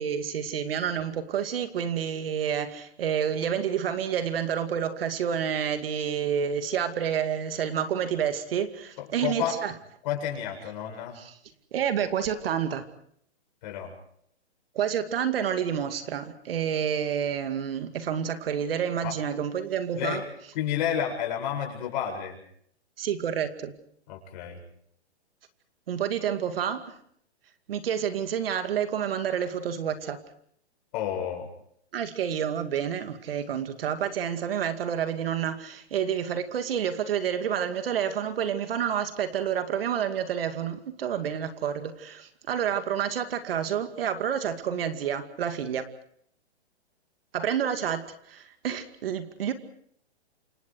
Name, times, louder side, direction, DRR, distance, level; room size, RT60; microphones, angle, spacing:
voice 1, 0.0-9.7 11.2-11.3 11.7-12.9 14.7-20.2 23.0-23.7 25.9-27.0 27.7-30.2 31.9-45.9 47.3-49.5, right 8 dB, 55° right, 2.4 m, -29 dB
voice 2, 9.0-9.6 10.0-11.2 13.6-13.9 19.0-19.2 20.0-20.2 20.5-22.4 24.1-24.6 30.9-31.5, left 9 dB, 40° left, 7.8 m, -30 dB
28.0 x 25.5 x 4.7 m
hypercardioid pair, 150°, 33 cm